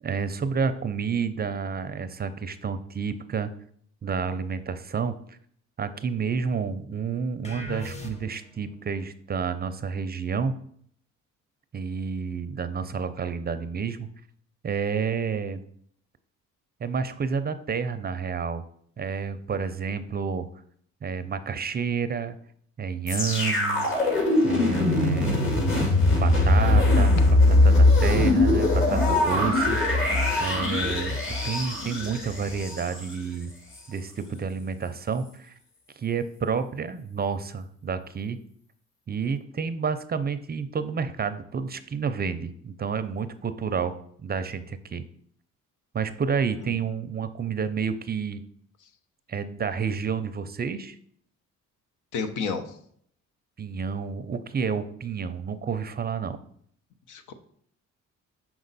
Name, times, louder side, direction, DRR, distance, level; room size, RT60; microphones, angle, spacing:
voice 1, 0.0-3.5 4.0-5.4 5.8-10.6 11.7-14.1 14.6-15.6 16.8-18.6 19.0-20.5 21.0-22.4 22.8-23.9 24.4-25.5 26.1-27.2 27.5-29.8 30.4-33.5 33.9-35.5 36.0-38.4 39.1-45.0 45.9-48.4 49.3-51.0 53.6-56.4, right 6 dB, 30° right, 12 dB, 0.5 m, -30 dB
sound 1, 7.4-8.6, left 1 dB, 20° left, 1.2 m, -38 dB
sound 2, 23.1-33.1 33.7-33.8, left 2 dB, 40° left, 2.0 m, -21 dB
voice 2, 52.1-52.6 57.1-57.3, left 5 dB, 75° left, 8 dB, 0.8 m, -30 dB
6.0 x 5.2 x 4.0 m, 0.64 s
cardioid pair, 90°, 30 cm